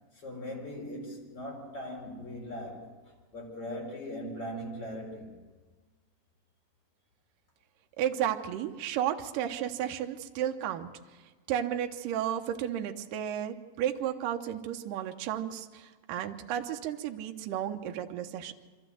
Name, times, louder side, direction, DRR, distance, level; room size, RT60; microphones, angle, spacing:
voice 1, 0.1-2.9 3.3-5.4, equal, 35° left, 0 dB, 4.9 m, -39 dB
voice 2, 8.0-10.9 11.5-18.5, right 10 dB, 70° right, 4 dB, 2.2 m, -33 dB
25.0 x 14.0 x 7.8 m, 1.4 s
omnidirectional pair, 4.8 m